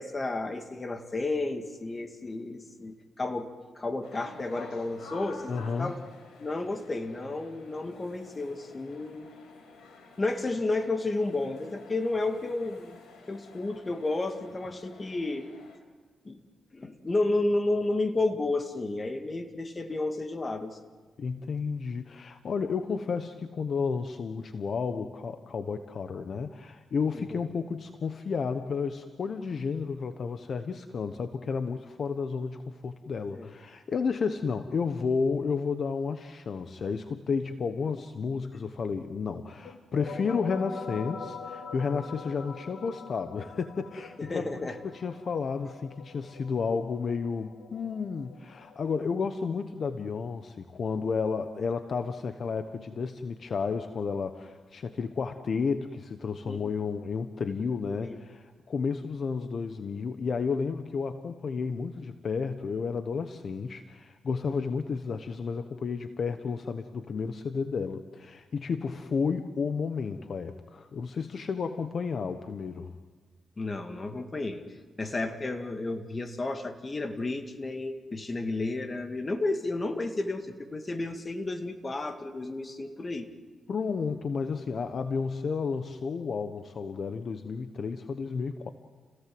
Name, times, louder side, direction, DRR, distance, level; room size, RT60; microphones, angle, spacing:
voice 1, 0.0-6.0 6.4-9.3 10.2-13.0 13.3-15.5 16.2-16.4 16.7-20.8 27.1-27.4 33.3-33.5 44.2-44.8 56.5-56.7 58.0-58.2 73.6-74.6 75.0-83.3, left 2 dB, 30° left, 6 dB, 2.2 m, -32 dB
sound 1, 4.0-15.8, left 3 dB, 90° left, 4.8 m, -50 dB
voice 2, 5.5-6.0 21.2-44.7 45.0-72.9 83.7-88.7, left 5 dB, 55° left, 8 dB, 1.1 m, -32 dB
sound 2, 39.6-49.0, left 5 dB, 70° left, 2.4 m, -44 dB
29.5 x 18.0 x 7.8 m, 1.4 s
cardioid pair, 85°, 0 cm